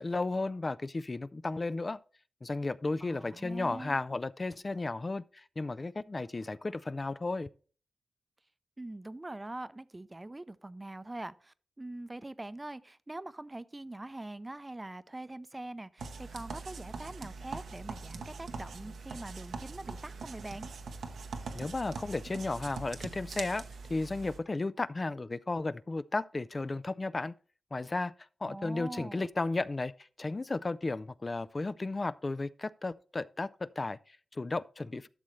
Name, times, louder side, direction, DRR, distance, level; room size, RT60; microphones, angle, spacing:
voice 1, 0.0-2.0 2.4-7.5 21.5-23.6 23.9-27.3 27.7-28.1 28.4-35.1, left 3 dB, 35° left, 0.3 m, -34 dB
voice 2, 3.0-4.0 8.8-20.7 28.5-29.3, right 2 dB, 25° right, 0.5 m, -43 dB
sound 1, 16.0-24.4, right 4 dB, 85° right, 0.9 m, -42 dB
12.5 x 6.3 x 3.1 m
cardioid pair, 55°, 0 cm